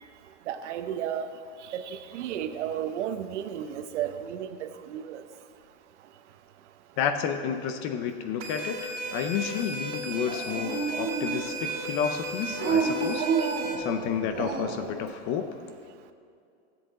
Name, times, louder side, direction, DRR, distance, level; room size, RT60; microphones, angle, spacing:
voice 1, 0.5-1.3 1.7-5.2 13.4-13.5, right 9 dB, 75° right, 9 dB, 0.8 m, -33 dB
voice 2, 7.0-13.3 13.8-15.5, left 8 dB, 30° left, 8 dB, 0.5 m, -31 dB
sound 1, 8.4-13.7, right 2 dB, 60° right, 2.0 m, -35 dB
Dog, 10.2-11.7 12.5-14.9, right 5 dB, 30° right, 1.2 m, -30 dB
15.0 x 7.9 x 3.7 m, 2.4 s
supercardioid pair, 165°, 36 cm